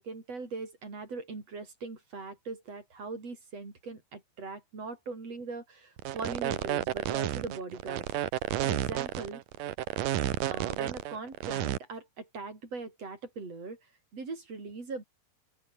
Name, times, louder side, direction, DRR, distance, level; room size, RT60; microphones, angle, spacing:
voice 1, 0.0-5.8 6.1-8.1 8.7-9.4 10.4-13.8 14.1-15.0, right 4 dB, 35° right, 6.7 m, -40 dB
sound 1, 6.0-11.8, right 13 dB, 65° right, 2.3 m, -31 dB
open air
omnidirectional pair, 4.8 m